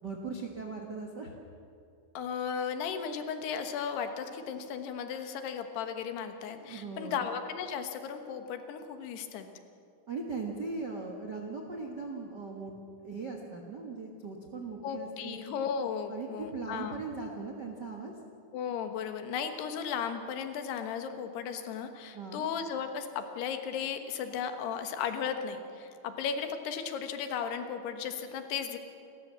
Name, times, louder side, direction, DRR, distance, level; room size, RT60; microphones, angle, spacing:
voice 1, 0.0-1.3 6.6-7.3 10.1-12.7 13.0-15.4 16.1-18.1 22.1-22.5, right 4 dB, 60° right, 2 dB, 1.1 m, -39 dB
voice 2, 2.1-9.5 14.8-17.0 18.5-28.8, left 7 dB, 85° left, 7 dB, 3.4 m, -35 dB
29.0 x 14.0 x 7.5 m, 2.6 s
omnidirectional pair, 4.6 m